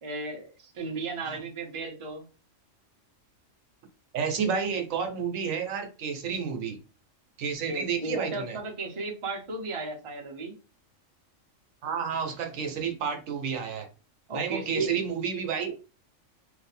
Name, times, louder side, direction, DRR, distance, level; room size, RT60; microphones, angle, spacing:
voice 1, 0.0-2.2 7.7-10.5 14.3-15.0, right 3 dB, 30° right, 1 dB, 0.6 m, -34 dB
voice 2, 4.1-6.8 7.4-8.6 11.8-13.9 14.3-15.8, right 6 dB, 80° right, 5 dB, 1.1 m, -30 dB
2.6 x 2.4 x 4.2 m, 0.33 s
omnidirectional pair, 1.4 m